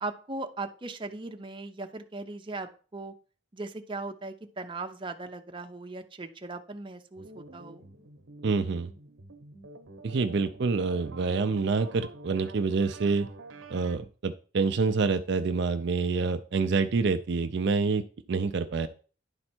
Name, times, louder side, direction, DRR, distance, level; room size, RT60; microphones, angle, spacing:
voice 1, 0.0-3.1 3.5-7.8, right 3 dB, 25° right, 5 dB, 0.7 m, -38 dB
sound 1, 7.2-14.0, right 2 dB, 85° right, 0.9 m, -47 dB
voice 2, 8.4-8.9 10.0-13.3 13.7-18.9, right 4 dB, 60° right, 9 dB, 0.4 m, -27 dB
10.5 x 4.4 x 4.4 m, 0.39 s
head